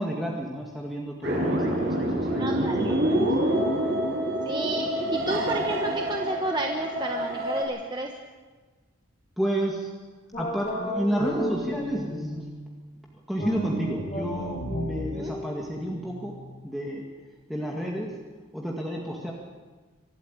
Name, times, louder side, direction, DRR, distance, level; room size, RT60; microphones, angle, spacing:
voice 1, 0.0-3.3 9.4-9.9 10.4-12.5 13.3-16.3 16.6-17.0 17.5-18.1 18.5-19.3, equal, ahead, -2 dB, 2.0 m, -31 dB
sound 1, 1.2-7.6, right 1 dB, 50° right, 5.7 m, -26 dB
voice 2, 2.4-3.0 4.4-8.1 15.1-15.3, right 2 dB, 20° right, 2 dB, 1.2 m, -31 dB
sound 2, 10.3-12.6 13.4-16.7, equal, 30° left, 3.9 m, -34 dB
24.0 x 13.5 x 9.0 m, 1.4 s
head